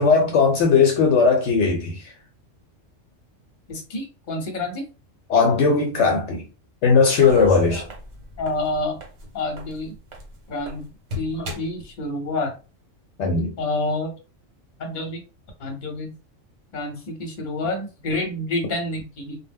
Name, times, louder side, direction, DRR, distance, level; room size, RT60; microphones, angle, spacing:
voice 1, 0.0-2.1 5.3-6.4 6.8-7.8 13.2-13.5, left 5 dB, 70° left, 0.8 m, -18 dB
voice 2, 3.7-4.8 8.4-9.0 9.3-9.9 10.5-10.9 11.1-12.5 13.6-14.1 14.8-15.2 15.6-16.1 16.7-19.4, left 2 dB, 45° left, 0.9 m, -28 dB
sound 1, 7.2-10.8 11.1-11.8 12.4-12.5, right 1 dB, 70° right, 1.1 m, -35 dB
2.2 x 2.0 x 3.4 m
omnidirectional pair, 1.3 m